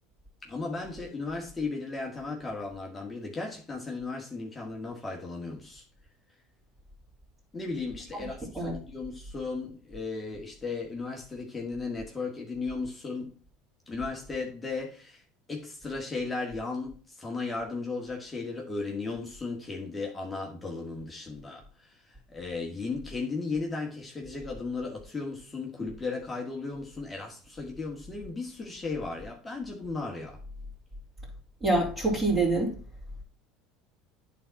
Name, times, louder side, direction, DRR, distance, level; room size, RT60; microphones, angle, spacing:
voice 1, 0.4-5.8 7.5-13.3 13.9-15.2 15.5-30.4, left 3 dB, 15° left, 0 dB, 2.0 m, -35 dB
voice 2, 31.6-32.7, right 2 dB, 15° right, -7 dB, 3.6 m, -25 dB
9.2 x 4.2 x 5.9 m, 0.40 s
supercardioid pair, 105°, 0 cm